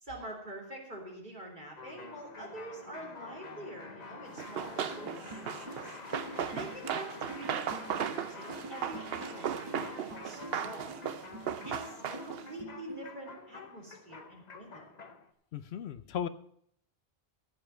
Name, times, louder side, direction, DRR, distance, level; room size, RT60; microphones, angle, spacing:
voice 1, 0.0-5.9 6.5-11.0 11.5-14.8, right 1 dB, 50° right, -2 dB, 3.4 m, -46 dB
sound 1, 1.8-15.3, left 4 dB, 45° left, 1.0 m, -48 dB
Run, 4.4-12.5, right 8 dB, 70° right, 0.9 m, -37 dB
sound 2, 4.9-13.1, right 1 dB, 25° right, 1.4 m, -47 dB
voice 2, 15.5-16.3, left 9 dB, 75° left, 13 dB, 0.9 m, -36 dB
14.5 x 5.6 x 7.4 m, 0.67 s
omnidirectional pair, 1.1 m